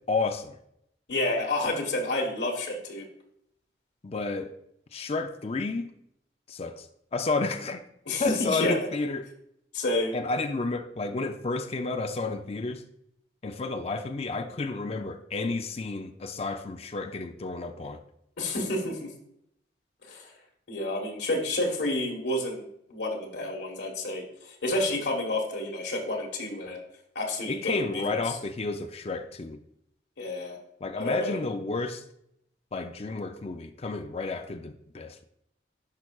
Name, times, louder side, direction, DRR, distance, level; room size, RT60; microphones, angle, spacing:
voice 1, 0.1-0.6 4.0-4.5 4.9-5.9 6.5-6.9 7.1-7.8 8.2-9.3 10.1-12.8 13.4-18.0 27.5-29.6 30.8-32.0 32.7-35.2, left 3 dB, 35° left, 0.5 m, -31 dB
voice 2, 1.1-3.0 8.1-8.7 9.7-10.2 18.4-19.1 20.1-20.3 20.7-22.6 22.9-26.8 27.1-28.4 30.2-30.6 30.9-31.4, left 1 dB, 80° left, 1.4 m, -30 dB
10.5 x 5.7 x 2.4 m
head